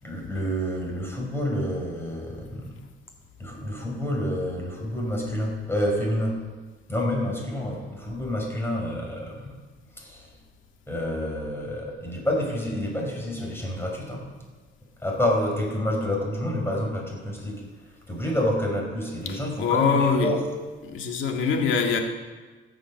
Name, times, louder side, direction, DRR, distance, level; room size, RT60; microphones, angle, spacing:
voice 1, 0.0-2.8 3.4-6.4 6.9-9.6 9.9-10.3 10.9-14.3 15.0-20.4, left 1 dB, 10° left, -1 dB, 5.0 m, -28 dB
voice 2, 19.3-20.3 20.8-22.0, left 5 dB, 80° left, 3 dB, 1.9 m, -24 dB
16.5 x 7.2 x 6.5 m, 1.3 s
cardioid pair, 90°, 20 cm